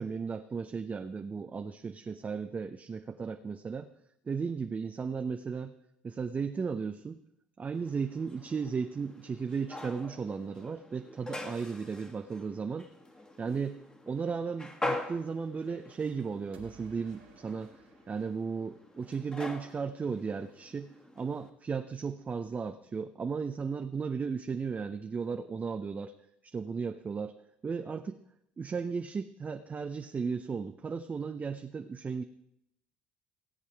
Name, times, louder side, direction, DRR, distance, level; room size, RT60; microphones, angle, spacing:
voice 1, 0.0-3.9 4.3-5.7 6.0-7.2 7.6-12.9 13.4-17.7 18.1-26.1 26.4-27.4 27.6-28.2 28.6-32.2, right 5 dB, 30° right, 7 dB, 0.6 m, -35 dB
sound 1, 7.7-21.5, left 2 dB, 15° left, 1.7 m, -44 dB
sound 2, 16.5-19.4, right 4 dB, 90° right, 1.6 m, -58 dB
16.0 x 8.2 x 4.6 m, 0.79 s
hypercardioid pair, 65°, 5 cm